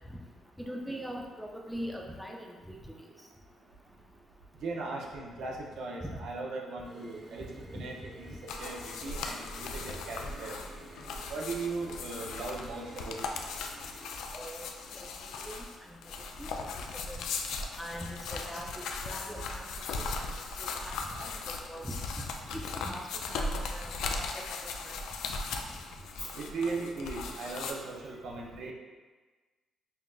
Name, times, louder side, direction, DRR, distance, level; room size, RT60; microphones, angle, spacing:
voice 1, 0.6-2.8 7.7-7.8 14.3-14.7 15.0-15.1 15.5-15.6 16.4-16.7 17.1-17.2 17.8-18.7 19.0-19.6 20.6-22.0 22.7-23.0 23.3-25.0, equal, ahead, 0 dB, 0.5 m, -41 dB
voice 2, 4.6-7.5 7.7-8.3 8.6-10.6 11.3-13.2 26.3-28.7, right 3 dB, 75° right, -1 dB, 0.6 m, -38 dB
sound 1, 6.8-14.2, right 1 dB, 35° right, 1.0 m, -51 dB
sound 2, 8.5-27.7, left 4 dB, 85° left, 0.3 m, -38 dB
5.6 x 2.4 x 2.3 m, 1.3 s
cardioid pair, 90°, 0 cm